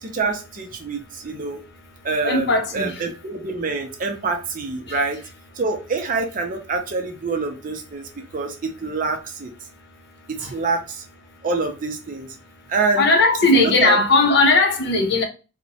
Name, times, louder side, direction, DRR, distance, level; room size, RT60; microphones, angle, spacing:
voice 1, 0.0-1.6 2.0-5.2 5.6-8.0 8.3-9.5 10.3-11.0 11.4-12.3 12.7-13.1 13.5-14.0, right 3 dB, 40° right, 0.5 m, -26 dB
voice 2, 2.2-2.9 10.4-10.5 13.0-15.2, left 2 dB, 55° left, 0.6 m, -17 dB
2.8 x 2.1 x 2.6 m
head